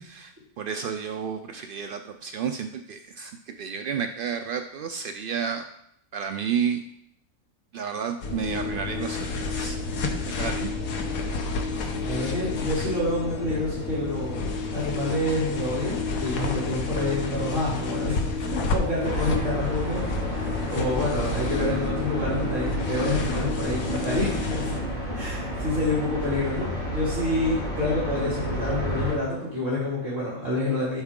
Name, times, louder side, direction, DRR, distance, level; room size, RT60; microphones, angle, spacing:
voice 1, 0.1-5.6 6.1-6.8 7.7-9.8 10.3-10.7, right 7 dB, 80° right, 6 dB, 0.4 m, -31 dB
sound 1, 8.2-24.8, left 3 dB, 80° left, 1.4 m, -30 dB
voice 2, 12.0-18.3 18.6-24.9 25.1-31.0, left 1 dB, 60° right, -10 dB, 3.5 m, -28 dB
sound 2, 19.0-29.1, equal, 30° left, 2.6 m, -31 dB
11.5 x 4.7 x 3.7 m, 0.72 s
omnidirectional pair, 1.5 m